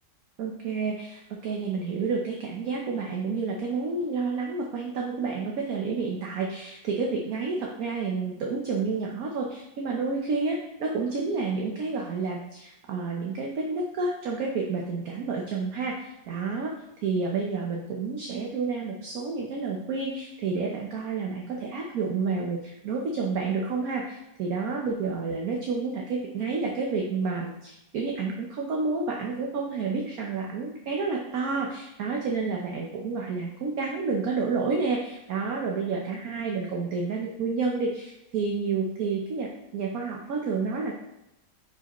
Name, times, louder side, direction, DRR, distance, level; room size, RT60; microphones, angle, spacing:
voice 1, 0.4-16.7 17.0-40.9, right 4 dB, 60° right, 0 dB, 1.2 m, -30 dB
9.5 x 4.8 x 3.0 m, 0.91 s
omnidirectional pair, 1.8 m